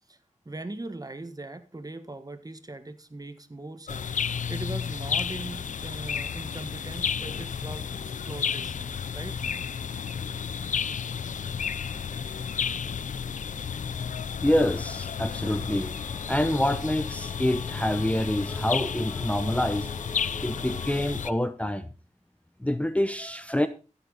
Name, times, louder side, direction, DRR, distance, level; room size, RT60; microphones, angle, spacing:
voice 1, 0.4-4.1 4.5-8.0 8.2-9.4, right 2 dB, 30° right, 10 dB, 1.5 m, -40 dB
sound 1, 3.9-21.3, left 7 dB, 80° left, 0.5 m, -32 dB
voice 2, 14.4-15.9 16.3-19.9 20.4-21.9 22.6-23.7, left 1 dB, 10° left, 11 dB, 0.8 m, -26 dB
sound 2, 15.4-20.9, left 3 dB, 35° left, 0.8 m, -44 dB
14.0 x 8.4 x 4.1 m, 0.34 s
wide cardioid pair, 60°, 13 cm